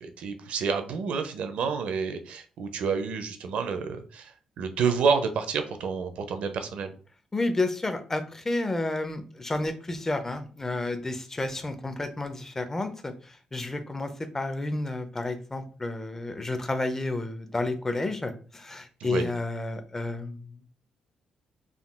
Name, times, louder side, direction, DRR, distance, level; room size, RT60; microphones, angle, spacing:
voice 1, 0.0-4.3 4.6-6.9 19.0-19.3, right 5 dB, 75° right, 8 dB, 0.5 m, -29 dB
voice 2, 7.3-20.5, left 2 dB, 20° left, 8 dB, 0.5 m, -31 dB
3.6 x 2.3 x 2.2 m, 0.39 s
cardioid pair, 85°, 2 cm